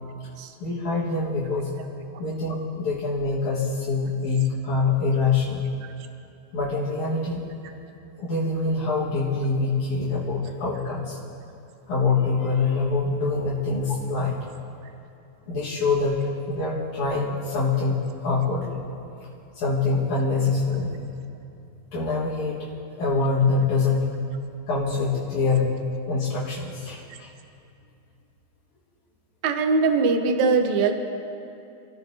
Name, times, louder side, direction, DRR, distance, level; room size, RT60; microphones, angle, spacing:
voice 1, 0.6-1.7 2.2-5.6 6.5-7.4 8.2-11.2 11.9-14.4 15.5-16.2 16.5-18.8 19.5-20.9 21.9-22.7 23.0-24.1 24.7-25.8 26.1-27.3, left 4 dB, 80° left, -8 dB, 3.2 m, -25 dB
voice 2, 29.4-30.9, right 4 dB, 75° right, 5 dB, 2.2 m, -21 dB
27.5 x 14.0 x 2.8 m, 2.7 s
omnidirectional pair, 3.4 m